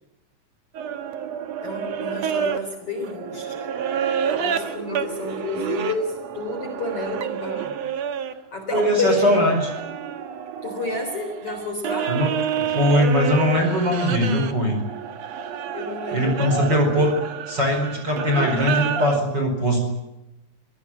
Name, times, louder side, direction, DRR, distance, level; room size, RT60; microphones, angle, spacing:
sound 1, 0.7-8.3 8.7-19.2, right 8 dB, 75° right, 1.5 m, -29 dB
voice 1, 1.6-3.8 4.3-7.8 8.5-9.3 10.6-12.2 15.7-17.1, left 2 dB, 30° left, 4 dB, 4.2 m, -30 dB
voice 2, 8.7-9.6 12.1-12.3 12.7-14.8 16.1-17.1 17.5-19.8, equal, 25° right, 3 dB, 5.0 m, -20 dB
25.0 x 18.0 x 8.8 m, 0.95 s
omnidirectional pair, 5.4 m